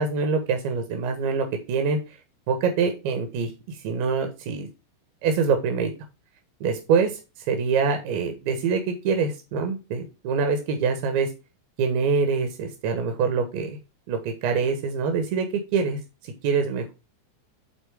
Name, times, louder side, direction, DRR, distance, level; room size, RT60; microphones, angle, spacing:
voice 1, 0.0-2.0 2.5-4.7 5.2-5.9 6.6-7.2 7.4-11.3 11.8-13.8 14.1-16.9, right 5 dB, 45° right, 5 dB, 1.6 m, -25 dB
8.8 x 4.1 x 5.1 m, 0.28 s
figure-of-eight pair, 90°, 0 cm